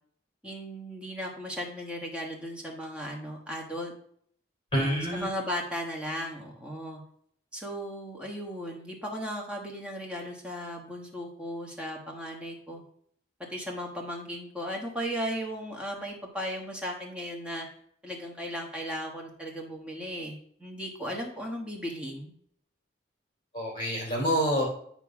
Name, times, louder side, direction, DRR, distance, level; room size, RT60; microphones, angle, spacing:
voice 1, 0.4-3.9 4.8-7.0 7.5-12.8 13.5-17.7 18.0-22.3, equal, 5° right, -1 dB, 1.3 m, -36 dB
voice 2, 4.7-5.3 23.5-24.7, equal, 25° left, -3 dB, 2.8 m, -27 dB
9.0 x 3.0 x 5.9 m, 0.64 s
head